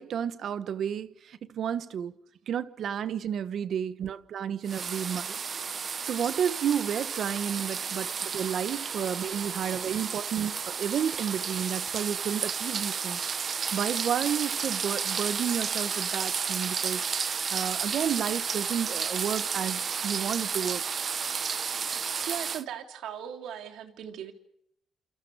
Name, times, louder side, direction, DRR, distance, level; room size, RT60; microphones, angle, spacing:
voice 1, 0.0-2.1 2.5-5.4 6.0-13.2 13.7-20.8, right 8 dB, 65° right, 1.2 m, -31 dB
sound 1, 4.6-22.6, right 6 dB, 45° right, 1.0 m, -32 dB
voice 2, 22.3-24.3, right 9 dB, 80° right, 3.1 m, -38 dB
29.0 x 28.0 x 4.9 m
cardioid pair, 90°, 0 cm